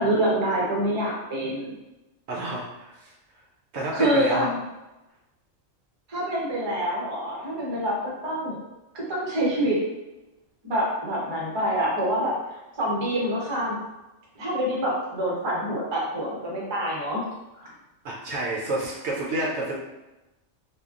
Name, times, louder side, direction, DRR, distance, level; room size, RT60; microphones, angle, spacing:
voice 1, 0.0-1.8 3.9-4.6 6.1-8.6 8.9-9.8 10.6-13.8 14.4-17.2, equal, 30° right, -4 dB, 0.6 m, -26 dB
voice 2, 2.3-3.1 3.7-4.5 18.0-19.7, right 2 dB, 65° right, -4 dB, 0.8 m, -29 dB
3.4 x 2.3 x 2.4 m, 1.0 s
omnidirectional pair, 1.3 m